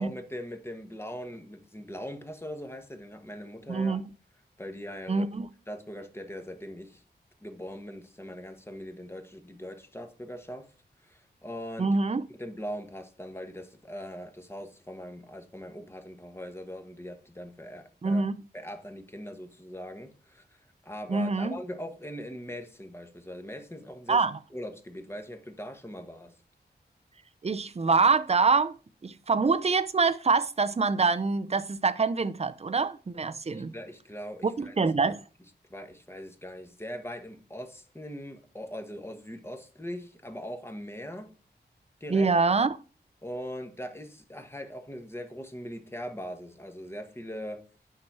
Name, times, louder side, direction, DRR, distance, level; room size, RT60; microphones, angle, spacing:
voice 1, 0.0-4.0 4.6-5.3 5.7-7.0 7.4-10.7 11.0-11.9 12.3-18.3 18.5-24.2 24.5-26.3 33.5-34.8 35.7-41.3 42.0-42.3 43.2-47.7, equal, 15° left, 1.3 m, -41 dB
voice 2, 3.7-4.0 5.1-5.5 11.8-12.2 18.0-18.4 21.1-21.6 24.1-24.3 27.4-28.8 29.0-33.7 34.4-35.2 42.1-42.7, right 4 dB, 35° right, 0.6 m, -25 dB
9.7 x 5.9 x 4.7 m
wide cardioid pair, 100°, 18 cm